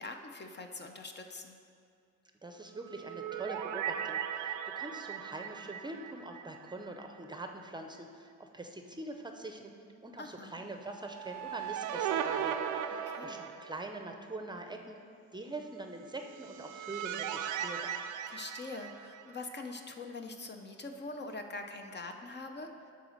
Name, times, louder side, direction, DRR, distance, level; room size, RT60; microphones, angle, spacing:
voice 1, 0.0-1.6 10.2-10.5 13.1-13.4 18.3-22.7, left 3 dB, 35° left, 5 dB, 0.7 m, -43 dB
voice 2, 2.4-9.8 10.0-15.0 15.3-18.0, right 2 dB, 15° right, 4 dB, 0.7 m, -44 dB
sound 1, 2.8-7.1 7.3-7.4 11.0-14.1 16.1-19.5, right 9 dB, 85° right, 0.5 m, -38 dB
11.5 x 4.0 x 6.5 m, 2.3 s
cardioid pair, 90°, 30 cm